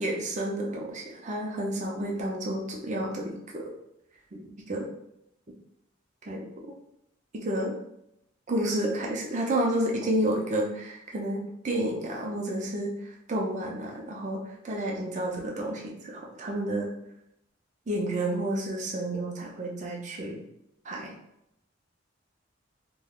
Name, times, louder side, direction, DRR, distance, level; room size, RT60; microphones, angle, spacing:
voice 1, 0.0-3.7 4.3-4.9 6.3-6.7 7.3-7.8 8.5-16.9 17.9-20.4 20.8-21.1, right 1 dB, 40° right, -1 dB, 0.5 m, -30 dB
2.3 x 2.2 x 3.5 m, 0.80 s
head